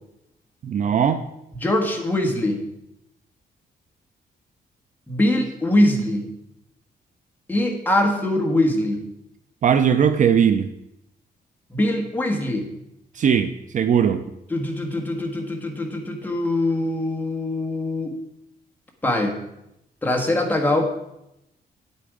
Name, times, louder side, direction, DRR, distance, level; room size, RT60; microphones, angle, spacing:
voice 1, 0.6-1.2 9.6-10.7 13.2-14.3, right 7 dB, 50° right, 10 dB, 0.5 m, -19 dB
voice 2, 1.6-2.6 5.1-6.3 7.5-9.0 11.7-12.7 14.5-18.1 19.0-19.4 20.0-20.8, left 1 dB, 10° left, 1 dB, 1.5 m, -22 dB
8.8 x 8.5 x 5.0 m, 0.84 s
wide cardioid pair, 155°, 17 cm